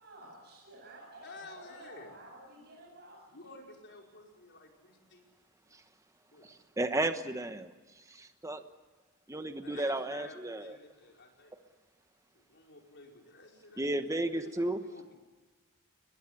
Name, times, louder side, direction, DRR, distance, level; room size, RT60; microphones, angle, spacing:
voice 1, 0.0-3.6, right 1 dB, 50° right, -2 dB, 7.1 m, -52 dB
voice 2, 1.2-2.2 3.3-5.3 5.6-5.7 6.3-6.6 9.6-11.5 12.3-14.0 14.3-15.1, left 3 dB, 55° left, 1 dB, 5.2 m, -52 dB
voice 3, 6.4-7.7 8.1-8.6 9.3-10.8 13.8-14.8, right 1 dB, 15° right, 8 dB, 1.1 m, -33 dB
22.0 x 22.0 x 8.4 m, 1.3 s
head